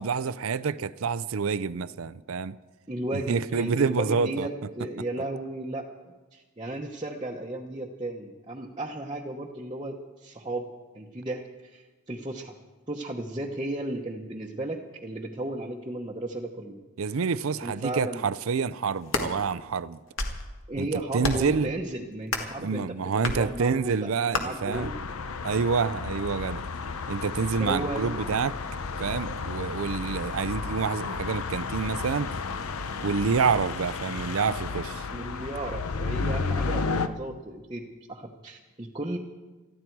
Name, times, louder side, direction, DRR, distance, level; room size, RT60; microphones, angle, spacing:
voice 1, 0.0-2.6 3.1-4.5 17.0-20.0 20.8-20.9 21.1-21.7 22.6-24.9 25.4-26.6 27.1-28.6 29.0-32.3 33.0-35.1, right 5 dB, 70° right, 0.5 m, -27 dB
voice 2, 2.9-10.7 10.9-12.6 12.9-16.8 17.6-18.3 20.7-25.0 27.6-28.1 35.1-39.2, right 1 dB, 20° right, 1.0 m, -35 dB
sound 1, 18.9-19.3 19.9-20.5 21.2-21.6 22.3-22.6 23.2-23.4 24.3-24.4, left 2 dB, 65° left, 2.0 m, -29 dB
sound 2, 24.7-37.1, left 4 dB, 80° left, 0.8 m, -32 dB
20.0 x 14.5 x 4.6 m
head